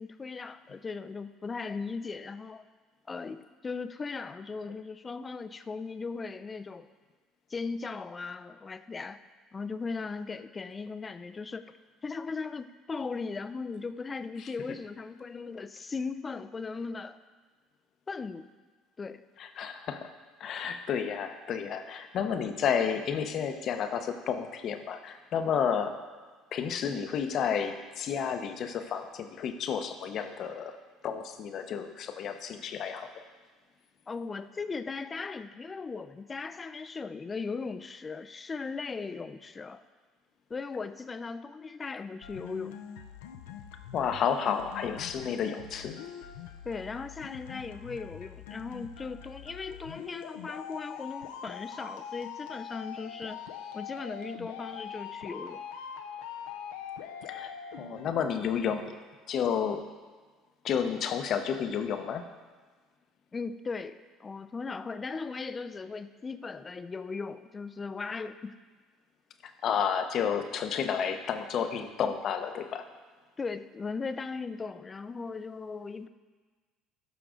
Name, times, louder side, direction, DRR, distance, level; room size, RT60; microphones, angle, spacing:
voice 1, 0.0-2.7 3.1-6.9 7.5-9.2 9.5-11.7 12.0-17.2 18.1-18.5 19.0-19.2 34.1-39.8 40.5-42.8 46.6-53.5 53.7-55.6 63.3-68.6 73.4-76.1, left 4 dB, 30° left, 11 dB, 0.5 m, -38 dB
voice 2, 19.4-20.1 20.4-25.9 26.5-30.8 31.0-33.2 43.9-46.0 57.3-57.5 57.8-59.0 59.3-59.8 60.6-62.2 69.6-72.8, left 7 dB, 55° left, 7 dB, 0.8 m, -31 dB
sound 1, 42.2-58.2, left 8 dB, 85° left, 0.6 m, -43 dB
12.5 x 5.8 x 3.8 m, 1.4 s
hypercardioid pair, 75°, 0 cm